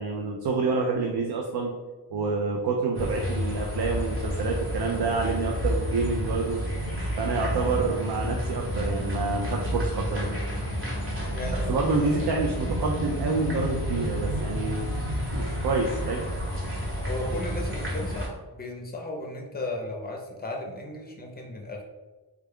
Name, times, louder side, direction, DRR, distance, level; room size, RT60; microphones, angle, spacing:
voice 1, 0.0-1.7 2.1-6.6 7.2-10.4 11.5-14.9 15.3-16.3, right 4 dB, 70° right, 1 dB, 0.5 m, -28 dB
sound 1, 2.9-18.3, equal, 30° right, 0.9 m, -30 dB
voice 2, 11.3-12.4 17.0-21.8, left 2 dB, 25° left, 1 dB, 0.5 m, -36 dB
3.5 x 2.3 x 3.5 m, 1.3 s
wide cardioid pair, 140°, 41 cm